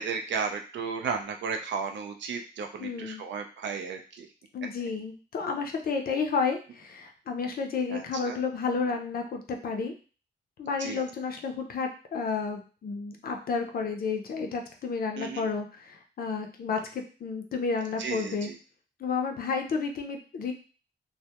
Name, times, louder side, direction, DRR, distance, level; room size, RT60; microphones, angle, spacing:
voice 1, 0.0-4.3 7.9-8.4 10.8-11.0 15.2-15.5 18.0-18.5, right 5 dB, 75° right, 4 dB, 0.4 m, -34 dB
voice 2, 2.8-3.2 4.5-9.9 10.6-18.5 19.0-20.5, left 5 dB, 55° left, 4 dB, 0.4 m, -31 dB
2.2 x 2.0 x 2.8 m, 0.36 s
wide cardioid pair, 160°, 19 cm